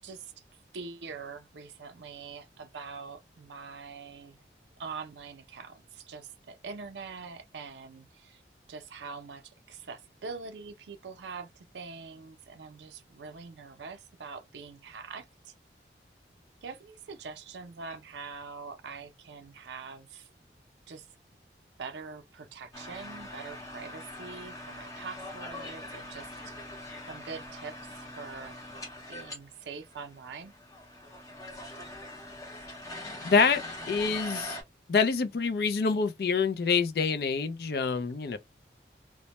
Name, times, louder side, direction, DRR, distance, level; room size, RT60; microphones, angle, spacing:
voice 1, 0.7-4.4 4.8-8.4 8.7-15.5 16.6-20.3 20.9-21.1 21.8-26.5 27.1-28.6 29.1-30.5, right 5 dB, 80° right, 0.4 m, -44 dB
sound 1, 22.7-29.4 29.6-29.7 29.9-34.6, left 1 dB, 20° left, 0.7 m, -42 dB
voice 2, 33.2-34.6 34.9-38.4, left 5 dB, 60° left, 0.4 m, -26 dB
2.1 x 2.1 x 2.8 m
head